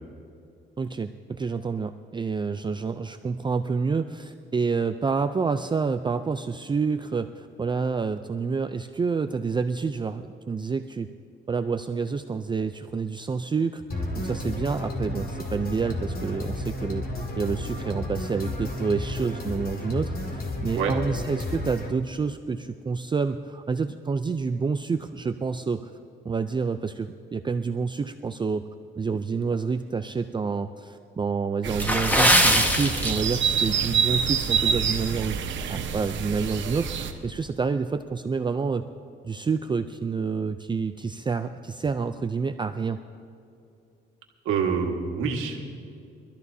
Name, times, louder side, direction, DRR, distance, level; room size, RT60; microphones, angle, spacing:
voice 1, 0.8-11.1 11.5-13.8 14.2-17.1 17.4-25.9 26.2-28.7 29.0-35.4 35.7-38.9 39.2-43.0, right 5 dB, 25° right, 8 dB, 0.4 m, -28 dB
sound 1, 13.9-21.9, left 1 dB, 50° left, 2.1 m, -32 dB
sound 2, 31.6-37.1, right 7 dB, 70° right, 1.1 m, -27 dB
Water / Splash splatter, 31.7-33.7 34.0-34.2 34.8-35.0 35.4-35.5, equal, 10° left, 1.5 m, -21 dB
voice 2, 44.4-45.6, right 6 dB, 85° right, 1 dB, 1.7 m, -26 dB
24.0 x 13.5 x 2.8 m, 2.5 s
cardioid pair, 90°, 20 cm